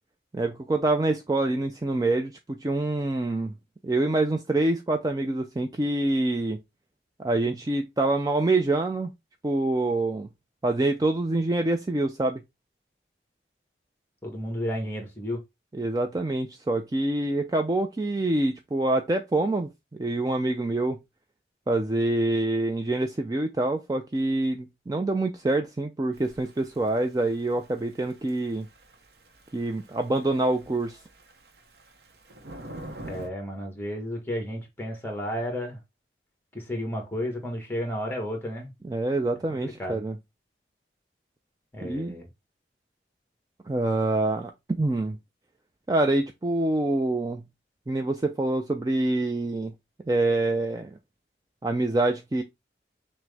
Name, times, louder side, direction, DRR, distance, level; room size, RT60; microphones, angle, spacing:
voice 1, 0.3-3.5 3.8-6.6 7.2-9.1 9.4-10.3 10.6-12.4 15.7-19.7 20.0-21.0 21.7-28.7 29.5-31.0 38.8-40.2 41.8-42.1 43.7-45.2 45.9-47.4 47.9-49.7 50.1-51.0 51.6-52.4, right 2 dB, 20° right, 0.3 m, -26 dB
voice 2, 14.2-15.4 33.1-35.8 36.5-38.7 39.6-40.0 41.7-42.3, equal, 10° left, 1.2 m, -32 dB
Thunder / Rain, 26.1-33.3, right 1 dB, 60° right, 0.7 m, -47 dB
6.0 x 2.1 x 3.3 m
head